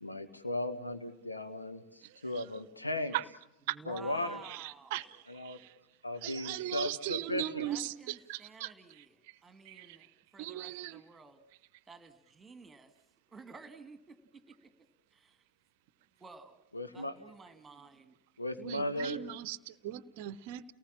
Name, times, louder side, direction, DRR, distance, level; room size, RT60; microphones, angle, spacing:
voice 1, 0.0-3.1 3.9-4.4 5.3-5.6 6.0-7.7 16.7-17.1 18.4-19.2, left 1 dB, 80° left, 1.6 m, -36 dB
voice 2, 2.0-2.4 3.1-3.2 3.7-3.8 4.4-5.7 6.2-8.7 9.7-10.0 10.4-11.0 18.6-20.6, right 14 dB, 50° right, 0.8 m, -39 dB
voice 3, 3.7-5.2 7.6-11.4 11.9-12.9 13.3-14.7 15.1-15.4 16.2-18.2, right 4 dB, 15° right, 1.9 m, -52 dB
30.0 x 19.0 x 7.3 m
figure-of-eight pair, 90°, 0 cm